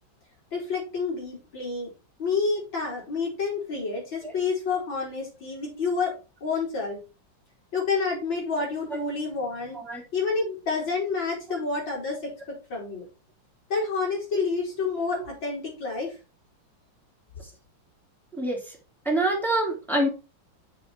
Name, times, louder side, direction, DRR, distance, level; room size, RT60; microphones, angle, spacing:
voice 1, 0.5-1.9 2.2-6.1 6.4-7.0 7.7-9.8 10.1-13.0 13.7-16.1, left 4 dB, 75° left, -3 dB, 5.2 m, -29 dB
voice 2, 18.3-18.8 19.0-20.1, right 1 dB, ahead, -1 dB, 3.0 m, -26 dB
7.5 x 6.3 x 4.5 m, 0.31 s
omnidirectional pair, 2.1 m